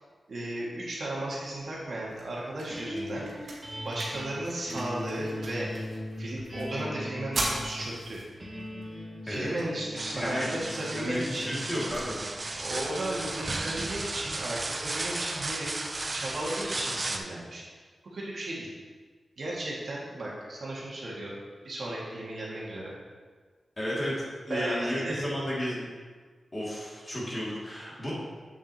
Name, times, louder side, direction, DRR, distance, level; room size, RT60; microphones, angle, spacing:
voice 1, 0.3-5.7 6.2-8.2 9.2-11.6 12.6-17.6 18.1-18.7 19.4-21.4 21.6-22.9 24.5-25.2, right 1 dB, 60° right, -5 dB, 1.9 m, -35 dB
sound 1, 1.6-13.6, right 2 dB, 80° right, 1.6 m, -42 dB
sound 2, 2.7-15.0, left 1 dB, 15° right, 2.2 m, -40 dB
sound 3, 10.0-17.2, right 2 dB, 30° right, 0.5 m, -35 dB
voice 2, 10.1-10.5 10.9-12.2 23.8-24.2 24.5-25.8 26.5-28.1, equal, 25° left, -6 dB, 2.3 m, -32 dB
7.9 x 7.3 x 2.9 m, 1.5 s
wide cardioid pair, 120°, 0 cm